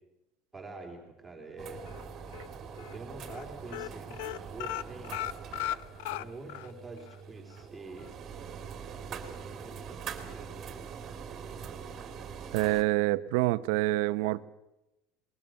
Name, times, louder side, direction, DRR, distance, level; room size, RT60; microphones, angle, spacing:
voice 1, 0.5-1.8 2.8-5.3 6.1-8.1 9.1-10.7, right 3 dB, 5° right, 0 dB, 3.7 m, -46 dB
sound 1, 1.6-12.8, right 6 dB, 25° right, 2.6 m, -43 dB
sound 2, 1.9-2.5 2.8-3.0 3.2-3.4 3.7-6.7 7.1-7.2 7.5-7.6, left 14 dB, 90° left, 0.7 m, -36 dB
voice 2, 12.5-14.5, right 18 dB, 75° right, 13 dB, 0.9 m, -27 dB
21.0 x 19.5 x 7.7 m, 0.93 s
cardioid pair, 170°, 0 cm